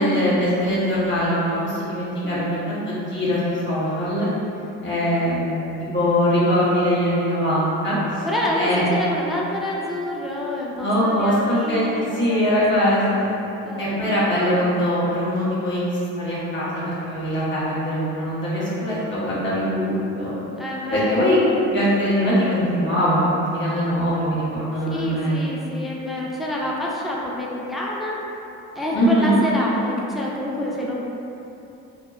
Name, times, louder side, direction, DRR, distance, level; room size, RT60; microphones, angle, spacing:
voice 1, 0.0-4.3 4.8-8.2 8.5-8.8 10.8-13.3 13.8-15.8 16.2-20.4 20.9-25.4 28.9-29.4, equal, 30° left, -9 dB, 1.2 m, -22 dB
voice 2, 2.2-2.6 8.3-12.9 13.6-14.5 20.5-21.3 21.6-21.8 24.9-28.2 28.8-30.9, left 1 dB, ahead, -4 dB, 0.4 m, -28 dB
2.7 x 2.2 x 2.5 m, 2.9 s
supercardioid pair, 65°, 35 cm